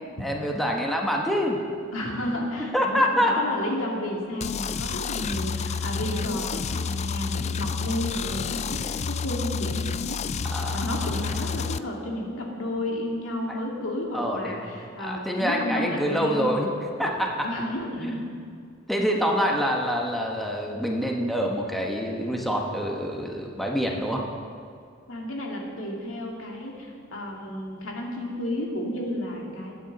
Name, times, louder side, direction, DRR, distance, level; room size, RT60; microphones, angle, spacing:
voice 1, 0.2-1.6 2.7-3.4 10.5-11.1 13.5-13.6 14.1-14.7 15.0-16.7 17.0-17.5 18.0-18.2 18.9-24.3, equal, ahead, -1 dB, 1.1 m, -26 dB
voice 2, 1.9-10.2 10.7-16.5 17.4-18.3 25.1-29.7, left 1 dB, 75° left, -1 dB, 2.5 m, -32 dB
sound 1, 4.4-11.8, left 5 dB, 35° left, 0.3 m, -30 dB
21.0 x 9.4 x 4.1 m, 2.2 s
head